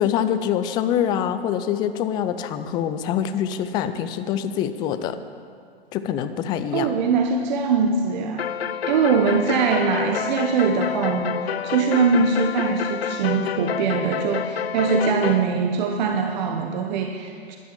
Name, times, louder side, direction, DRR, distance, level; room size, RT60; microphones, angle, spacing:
voice 1, 0.0-5.2 5.9-6.9, left 9 dB, 15° left, 11 dB, 0.4 m, -25 dB
voice 2, 6.7-8.5 8.9-17.6, right 5 dB, 45° right, 4 dB, 1.1 m, -22 dB
sound 1, 8.4-15.4, left 8 dB, 70° left, 0.6 m, -28 dB
13.0 x 12.0 x 7.3 m, 2.2 s
figure-of-eight pair, 120°, 32 cm